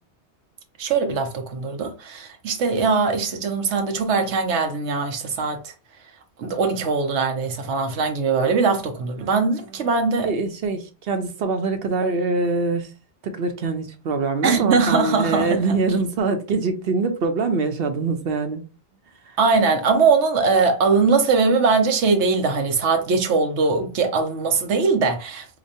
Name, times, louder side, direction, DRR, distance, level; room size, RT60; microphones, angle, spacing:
voice 1, 0.8-5.7 6.4-10.3 14.4-15.7 19.4-25.5, right 4 dB, 85° right, 1.0 m, -21 dB
voice 2, 10.2-12.9 13.2-18.6 19.2-19.4, right 3 dB, 60° right, 0.9 m, -24 dB
5.0 x 2.2 x 2.6 m
omnidirectional pair, 1.2 m